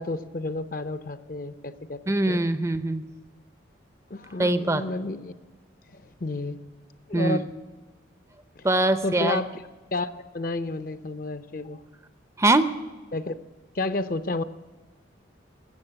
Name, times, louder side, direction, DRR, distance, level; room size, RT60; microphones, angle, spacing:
voice 1, 0.0-2.0 2.3-2.4 4.1-5.3 5.9-6.6 7.1-7.5 8.6-8.7 9.0-9.5 9.9-11.8 13.1-13.3 13.7-14.4, left 2 dB, 45° left, 12 dB, 0.6 m, -31 dB
voice 2, 2.1-3.1 4.4-4.8 7.1-7.4 8.6-9.4 12.4-12.7, right 2 dB, 15° right, 11 dB, 0.5 m, -22 dB
14.5 x 7.1 x 9.7 m, 1.3 s
head